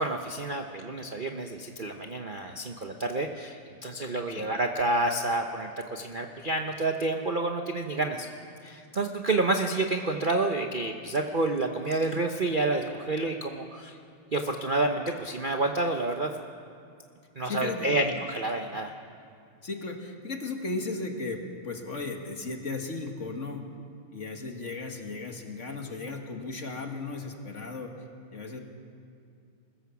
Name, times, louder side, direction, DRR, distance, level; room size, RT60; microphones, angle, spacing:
voice 1, 0.0-8.3 8.6-14.0 14.3-16.3 17.4-18.9, right 2 dB, 60° right, 4 dB, 0.5 m, -29 dB
voice 2, 17.4-18.1 19.6-23.6 24.1-27.9 28.3-28.6, left 3 dB, 35° left, 3 dB, 1.9 m, -36 dB
25.5 x 16.0 x 7.1 m, 2.4 s
omnidirectional pair, 2.4 m